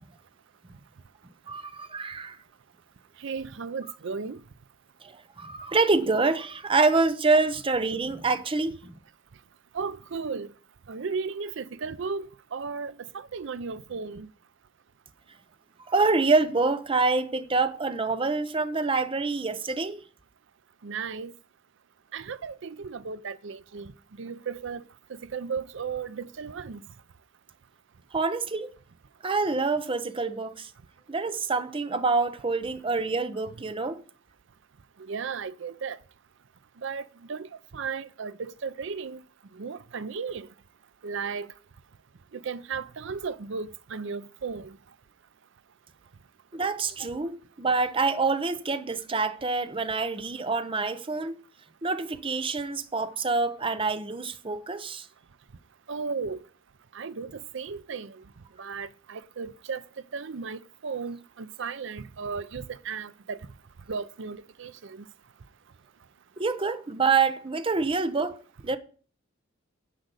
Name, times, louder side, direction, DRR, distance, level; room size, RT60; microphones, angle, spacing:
voice 1, 1.5-2.4 5.0-8.9 15.9-20.0 28.1-28.7 29.2-30.7 31.1-34.0 46.5-51.4 51.8-55.1 66.4-68.8, right 3 dB, 25° right, 0.8 m, -26 dB
voice 2, 3.2-4.4 9.7-10.5 10.9-14.3 20.8-21.3 22.1-23.9 24.2-24.8 25.1-26.8 35.1-36.0 36.8-37.5 37.7-39.2 39.6-40.5 41.0-41.5 42.4-44.8 55.9-56.4 56.9-58.2 58.6-59.8 60.1-63.4 63.9-65.0, right 5 dB, 65° right, 0.6 m, -35 dB
10.0 x 5.2 x 8.1 m
head